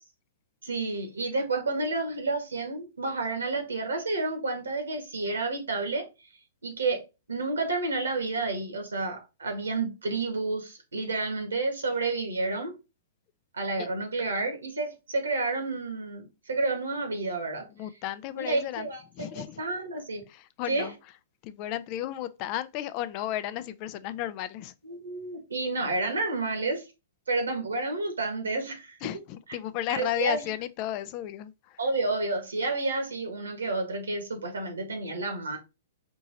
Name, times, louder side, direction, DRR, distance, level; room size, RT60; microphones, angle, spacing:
voice 1, 0.6-6.0 6.6-7.0 7.3-12.7 13.5-17.6 18.4-20.2 20.7-20.9 24.8-26.9 27.3-29.0 29.9-30.5 31.8-35.6, right 3 dB, 85° right, 1.7 m, -30 dB
voice 2, 17.7-18.9 19.1-19.6 20.3-21.0 21.4-24.7 29.0-31.8, left 13 dB, 40° left, 0.4 m, -34 dB
4.5 x 2.8 x 4.0 m
hypercardioid pair, 120°, 0 cm